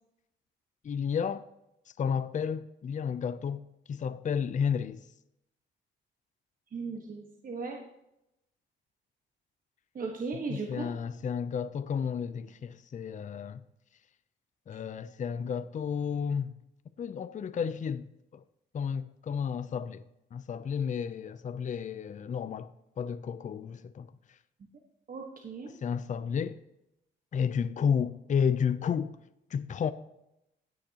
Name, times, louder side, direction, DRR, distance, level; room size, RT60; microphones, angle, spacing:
voice 1, 0.8-1.4 2.0-5.1 10.5-13.6 14.7-16.6 17.0-18.1 18.3-18.4 18.7-20.0 20.3-24.4 25.8-26.6 27.3-29.2 29.5-29.9, left 7 dB, 40° left, 0.6 m, -32 dB
voice 2, 6.7-7.8 9.9-10.9 25.1-25.7, right 4 dB, 45° right, 1.4 m, -37 dB
16.5 x 6.4 x 2.9 m
cardioid pair, 90°, 20 cm